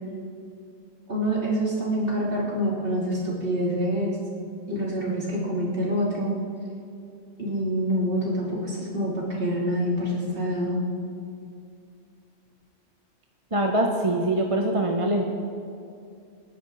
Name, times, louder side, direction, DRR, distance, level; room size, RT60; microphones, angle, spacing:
voice 1, 1.1-4.2 4.7-6.4 7.4-10.8, equal, 55° right, -5 dB, 3.6 m, -26 dB
voice 2, 13.5-15.2, right 1 dB, 30° right, 1 dB, 1.1 m, -23 dB
29.0 x 10.5 x 4.1 m, 2.5 s
omnidirectional pair, 1.2 m